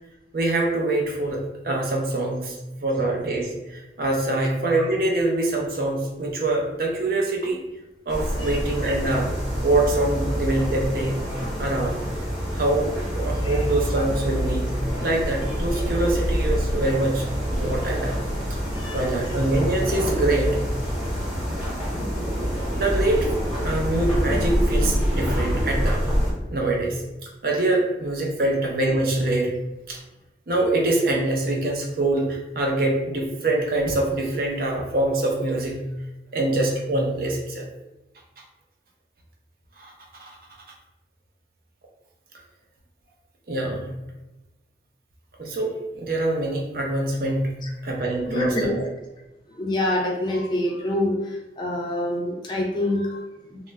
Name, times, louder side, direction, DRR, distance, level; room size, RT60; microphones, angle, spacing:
voice 1, 0.3-7.6 8.1-9.4 9.6-11.2 11.6-12.0 12.5-18.1 18.5-18.6 18.9-20.6 22.0-23.3 23.6-26.0 26.5-29.5 29.9-30.0 30.5-35.8 36.3-37.7 39.8-40.4 43.5-43.9 45.4-47.6 47.8-48.9, right 2 dB, 55° right, 0 dB, 0.5 m, -24 dB
sound 1, 8.1-26.3, equal, ahead, 0.9 m, -26 dB
voice 2, 18.7-19.1 48.3-48.8 49.5-53.6, left 1 dB, 25° left, -2 dB, 0.4 m, -26 dB
2.2 x 2.0 x 3.3 m, 1.0 s
head